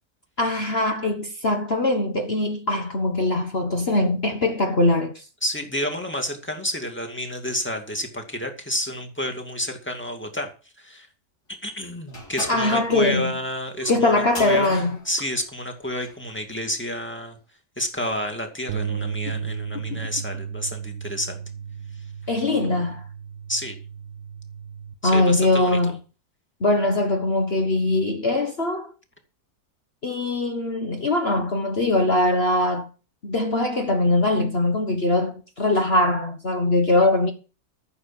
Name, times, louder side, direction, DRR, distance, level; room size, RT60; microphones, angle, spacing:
voice 1, 0.4-5.2 12.5-13.3 13.9-15.0 19.3-19.4 19.9-20.0 22.3-23.1 25.0-26.0 26.6-28.9 30.0-32.9 33.2-37.3, left 2 dB, 40° left, 1.5 m, -22 dB
voice 2, 5.4-10.5 10.8-11.1 11.5-14.1 14.4-17.4 17.8-21.4 23.5-23.8 25.0-25.8, left 1 dB, 5° left, 2.2 m, -30 dB
sound 1, 12.1-16.2, left 2 dB, 70° left, 4.7 m, -39 dB
sound 2, 18.7-24.9, right 7 dB, 70° right, 1.7 m, -34 dB
14.0 x 7.2 x 6.0 m
omnidirectional pair, 1.7 m